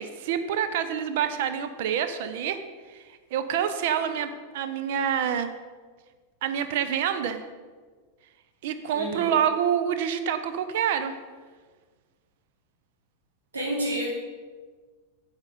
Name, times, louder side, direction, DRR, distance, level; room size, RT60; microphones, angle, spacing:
voice 1, 0.0-2.6 2.9-3.0 3.3-5.6 6.4-7.4 8.6-11.2, right 8 dB, 50° right, 10 dB, 0.8 m, -27 dB
voice 2, 8.9-9.3 13.5-14.1, right 1 dB, 70° right, -3 dB, 3.5 m, -29 dB
9.7 x 8.1 x 5.5 m, 1.5 s
figure-of-eight pair, 90°, 0 cm